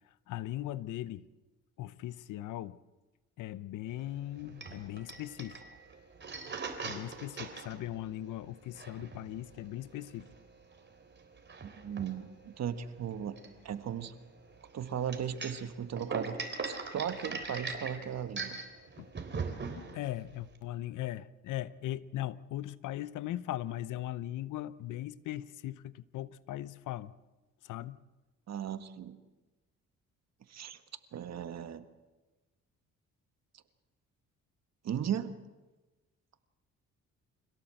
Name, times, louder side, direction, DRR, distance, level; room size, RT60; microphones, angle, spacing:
voice 1, 0.0-1.3 1.8-2.8 3.4-5.6 6.8-10.3 19.0-19.1 19.9-27.1 27.6-28.0, left 14 dB, 80° left, 0.9 m, -39 dB
sound 1, 3.9-20.6, right 4 dB, 35° right, 3.6 m, -41 dB
voice 2, 11.6-13.4 13.6-14.1 14.7-18.6 28.5-29.2 30.5-30.8 31.1-31.8 34.8-35.3, right 8 dB, 60° right, 1.6 m, -37 dB
25.5 x 17.0 x 7.8 m
cardioid pair, 90°, 30 cm